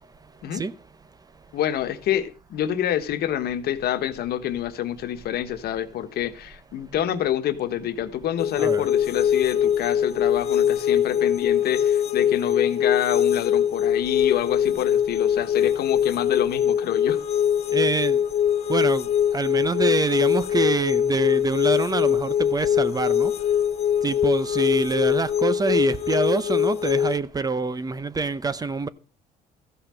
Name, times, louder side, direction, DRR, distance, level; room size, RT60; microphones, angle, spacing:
voice 1, 1.5-17.2, left 11 dB, 70° left, 1.4 m, -27 dB
sound 1, 8.4-27.2, left 9 dB, 40° left, 0.5 m, -22 dB
voice 2, 17.7-18.2 18.7-19.0 19.3-23.3 24.0-28.9, right 4 dB, 20° right, 0.8 m, -25 dB
14.5 x 5.6 x 7.5 m
cardioid pair, 110°, 17 cm